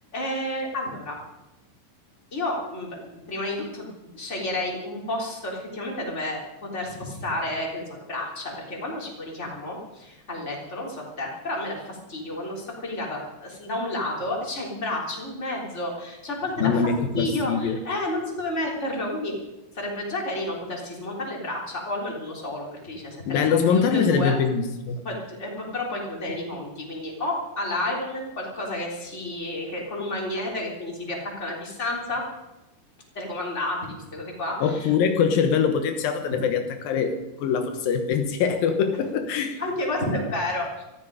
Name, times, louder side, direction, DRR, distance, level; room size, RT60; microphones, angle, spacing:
voice 1, 0.1-1.2 2.3-16.9 17.1-19.3 19.7-24.4 25.0-32.2 33.1-34.9 39.6-40.8, left 1 dB, 20° left, -2 dB, 3.9 m, -31 dB
voice 2, 16.6-17.8 23.3-25.0 34.6-39.6, left 6 dB, 80° left, 6 dB, 2.9 m, -23 dB
19.0 x 14.5 x 5.0 m, 1.0 s
omnidirectional pair, 4.0 m